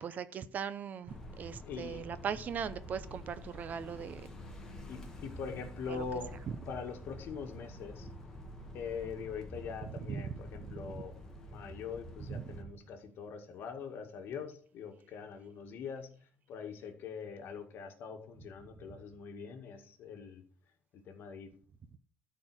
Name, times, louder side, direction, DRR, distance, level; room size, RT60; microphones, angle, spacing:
voice 1, 0.0-4.3 5.9-6.0 10.1-10.3 10.9-11.0 12.3-12.6, right 7 dB, 40° right, 0.6 m, -39 dB
sound 1, 1.1-12.6, left 1 dB, 15° left, 1.7 m, -48 dB
voice 2, 1.6-2.0 4.9-6.4 6.7-8.1 8.7-20.4 20.9-21.5, left 6 dB, 55° left, 2.0 m, -43 dB
12.5 x 4.6 x 6.2 m
cardioid pair, 155°, 4 cm